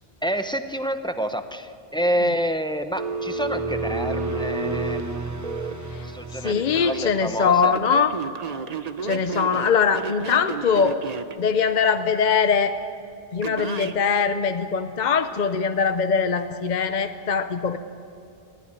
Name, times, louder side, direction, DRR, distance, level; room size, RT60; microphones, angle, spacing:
voice 1, 0.2-5.0 6.0-7.7, equal, 5° left, 8 dB, 0.7 m, -28 dB
Telephone, 3.0-5.7 6.4-7.1 7.6-11.4 13.4-14.0, right 4 dB, 40° right, 0.8 m, -31 dB
sound 1, 3.2-7.6, right 2 dB, 15° right, 1.0 m, -33 dB
voice 2, 6.4-8.1 9.0-11.0 11.4-12.8 13.3-17.8, left 6 dB, 50° left, 9 dB, 0.8 m, -22 dB
19.0 x 15.0 x 9.9 m, 2.6 s
omnidirectional pair, 1.1 m